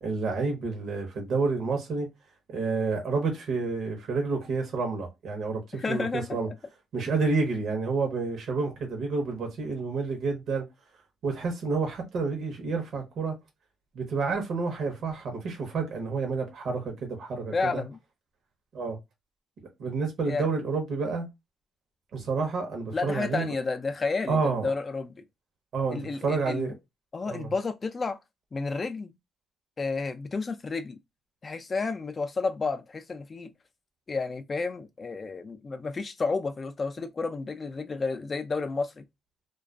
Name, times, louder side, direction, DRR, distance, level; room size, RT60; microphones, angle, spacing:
voice 1, 0.0-2.1 2.5-6.5 6.9-10.6 11.2-13.3 13.9-17.8 18.7-19.0 19.8-21.3 22.1-23.4 24.3-24.7 25.7-26.7 27.3-27.5, right 4 dB, 70° right, 0.8 m, -29 dB
voice 2, 5.7-6.4 17.5-18.0 20.3-20.5 22.9-25.2 25.9-26.7 27.1-28.2 28.5-29.1 29.8-31.0 31.4-33.5 34.1-39.0, left 4 dB, 35° left, 0.3 m, -31 dB
2.4 x 2.3 x 2.3 m
cardioid pair, 90°, 0 cm